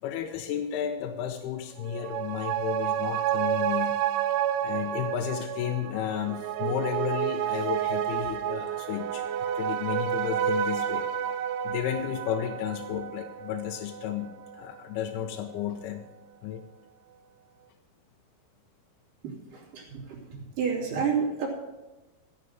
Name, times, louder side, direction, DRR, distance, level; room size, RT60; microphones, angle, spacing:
voice 1, 0.0-4.0 4.6-9.3 9.5-11.3 11.6-16.0 16.4-16.6, left 10 dB, 85° left, 4 dB, 2.7 m, -33 dB
sound 1, 1.8-14.7 15.0-15.1, right 10 dB, 80° right, 2.6 m, -30 dB
voice 2, 19.5-21.6, right 6 dB, 60° right, -4 dB, 4.4 m, -30 dB
15.5 x 6.5 x 7.7 m, 1.1 s
omnidirectional pair, 4.7 m